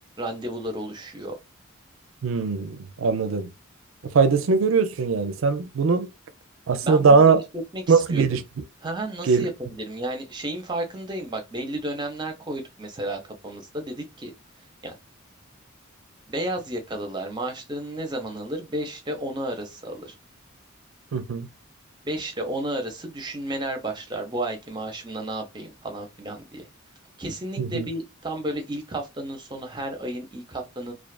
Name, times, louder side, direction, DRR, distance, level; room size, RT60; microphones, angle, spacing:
voice 1, 0.2-1.4 6.8-7.4 7.7-8.4 8.8-9.5 9.8-14.3 14.8-14.9 16.3-20.1 22.0-26.7 27.2-30.9, right 1 dB, 20° right, 0.7 m, -32 dB
voice 2, 2.2-3.5 4.0-6.1 6.7-7.4 7.9-8.4 9.2-9.5 21.1-21.5 27.6-27.9, right 5 dB, 65° right, 0.4 m, -20 dB
2.4 x 2.4 x 2.3 m
head